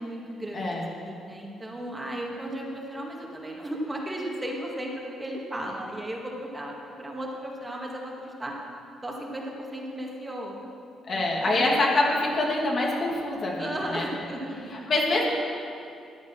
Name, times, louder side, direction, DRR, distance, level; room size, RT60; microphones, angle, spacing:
voice 1, 0.0-8.5 9.0-10.7 11.1-11.9 13.6-14.9, right 1 dB, 20° right, -1 dB, 2.0 m, -35 dB
voice 2, 0.5-0.9 11.0-14.1 14.7-15.3, left 2 dB, 50° left, -2 dB, 2.4 m, -25 dB
13.5 x 8.6 x 6.1 m, 2.5 s
cardioid pair, 90°, 0 cm